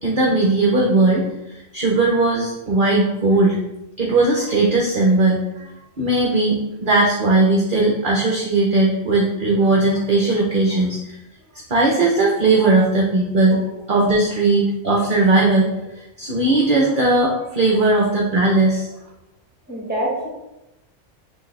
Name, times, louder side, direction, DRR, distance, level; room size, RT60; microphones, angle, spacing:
voice 1, 0.0-3.6 4.0-11.0 11.7-15.7 16.2-18.9, right 2 dB, 50° right, -2 dB, 0.8 m, -18 dB
voice 2, 19.7-20.3, right 1 dB, 10° right, -3 dB, 1.2 m, -26 dB
6.1 x 2.6 x 3.3 m, 0.92 s
omnidirectional pair, 1.3 m